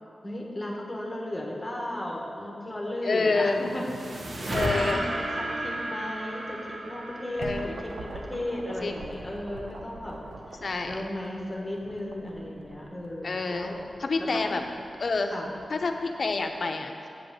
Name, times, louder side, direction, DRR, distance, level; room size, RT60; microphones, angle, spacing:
voice 1, 0.2-3.8 4.5-4.9 5.6-10.2 10.5-10.6 10.9-13.8 14.2-14.3 15.3-15.5, left 1 dB, 15° left, -1 dB, 1.4 m, -35 dB
voice 2, 3.0-3.6 4.5-5.0 7.4-7.8 8.8-8.9 10.6-11.0 13.2-13.7 14.0-14.6 15.0-15.3 15.7-16.9, left 3 dB, 55° left, 5 dB, 0.7 m, -27 dB
sound 1, 3.2-8.6, right 1 dB, 55° right, 1.0 m, -33 dB
sound 2, 7.0-16.4, right 2 dB, 80° right, 0.7 m, -45 dB
8.0 x 5.2 x 7.5 m, 2.5 s
wide cardioid pair, 115°, 0 cm